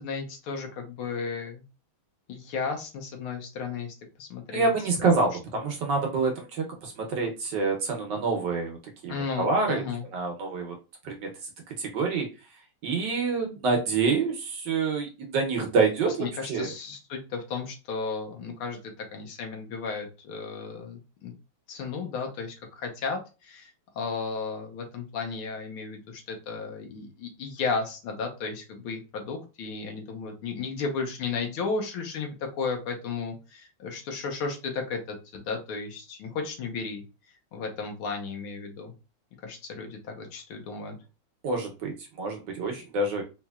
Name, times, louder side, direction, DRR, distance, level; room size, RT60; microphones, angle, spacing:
voice 1, 0.0-1.6 2.3-4.7 5.0-5.1 9.1-10.0 16.0-21.3 21.7-23.7 23.9-37.0 37.5-38.9 39.4-41.0, left 4 dB, 75° left, 2 dB, 1.7 m, -34 dB
voice 2, 4.5-8.8 9.0-9.8 10.1-10.8 11.0-11.3 11.7-12.3 12.8-16.7 41.4-43.2, right 4 dB, 65° right, 2 dB, 1.3 m, -27 dB
4.2 x 2.9 x 2.3 m, 0.30 s
omnidirectional pair, 2.4 m